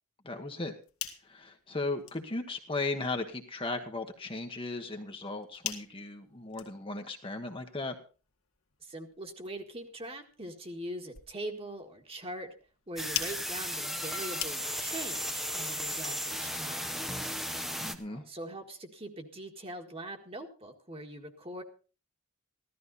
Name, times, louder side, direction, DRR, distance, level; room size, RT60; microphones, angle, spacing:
voice 1, 0.2-0.7 1.2-7.9 17.8-18.2, left 3 dB, 25° left, 4 dB, 1.2 m, -36 dB
sound 1, 0.6-15.0, left 11 dB, 70° left, 1.9 m, -45 dB
voice 2, 8.8-12.5 12.9-17.0 18.1-21.6, right 1 dB, 25° right, 4 dB, 1.8 m, -42 dB
sound 2, 13.0-17.9, equal, ahead, 0.9 m, -35 dB
15.5 x 13.0 x 4.1 m, 0.35 s
head